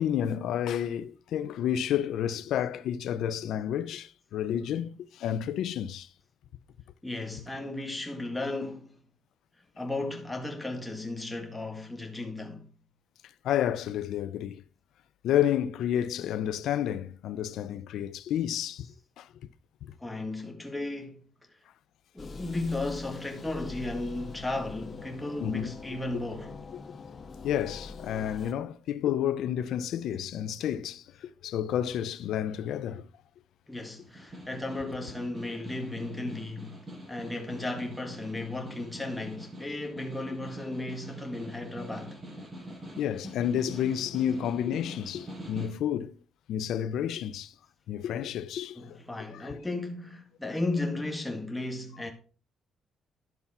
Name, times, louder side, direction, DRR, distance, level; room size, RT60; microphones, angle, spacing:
voice 1, 0.0-6.1 13.4-14.6 15.2-18.9 19.2-19.3 25.4-25.7 26.1-26.2 26.7-26.8 27.4-33.1 43.0-46.1 46.5-47.5 47.9-49.0 49.3-49.6, left 10 dB, 80° left, 0.6 m, -30 dB
voice 2, 7.0-9.0 9.8-12.7 20.0-21.6 22.1-26.6 33.7-36.8 37.1-42.2 48.8-52.1, left 2 dB, 10° left, 1.9 m, -35 dB
sound 1, 22.2-28.5, left 4 dB, 40° left, 1.3 m, -43 dB
Snare drum, 34.0-45.8, right 1 dB, 30° right, 6.2 m, -45 dB
11.0 x 7.0 x 4.3 m
cardioid pair, 90°, 0 cm